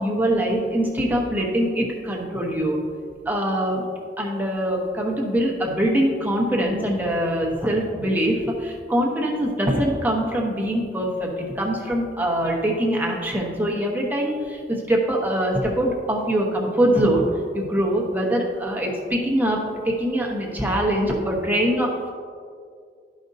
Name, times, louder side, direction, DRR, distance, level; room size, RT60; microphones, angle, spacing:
voice 1, 0.0-2.8 3.2-3.8 4.2-17.3 17.5-19.6 19.8-22.1, right 1 dB, 10° right, -1 dB, 1.1 m, -23 dB
12.5 x 5.2 x 2.7 m, 2.2 s
head